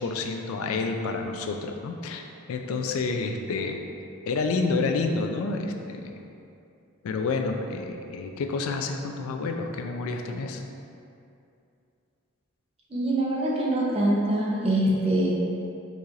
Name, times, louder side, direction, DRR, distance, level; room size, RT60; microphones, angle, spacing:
voice 1, 0.0-2.2 2.5-3.8 4.3-6.2 7.0-10.6, left 3 dB, 70° left, 4 dB, 0.3 m, -29 dB
voice 2, 12.9-15.3, right 1 dB, 25° right, -5 dB, 0.6 m, -24 dB
4.7 x 2.5 x 2.7 m, 2.6 s
head